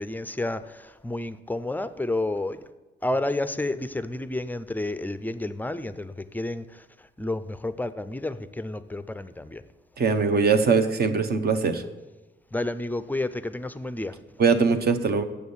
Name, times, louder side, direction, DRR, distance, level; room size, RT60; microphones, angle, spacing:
voice 1, 0.0-2.6 3.0-6.8 7.2-9.6 12.5-14.2, left 2 dB, 10° left, 13 dB, 0.4 m, -30 dB
voice 2, 10.0-11.8 14.4-15.2, right 5 dB, 50° right, 9 dB, 0.8 m, -21 dB
8.1 x 6.8 x 7.1 m, 1.2 s
cardioid pair, 120°, 20 cm